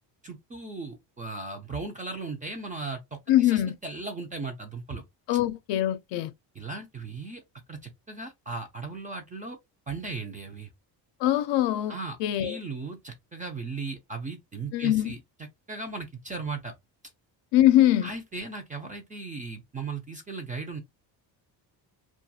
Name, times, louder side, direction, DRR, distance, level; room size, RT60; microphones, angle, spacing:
voice 1, 0.2-5.0 6.5-7.4 7.7-9.6 9.9-10.7 11.9-15.2 15.7-16.7 18.0-20.8, right 3 dB, 20° right, 0.3 m, -37 dB
voice 2, 3.3-3.7 5.3-6.3 11.2-11.9 12.2-12.6 14.7-15.1 17.5-18.1, left 13 dB, 75° left, 0.5 m, -22 dB
2.3 x 2.3 x 2.6 m
cardioid pair, 150°, 44 cm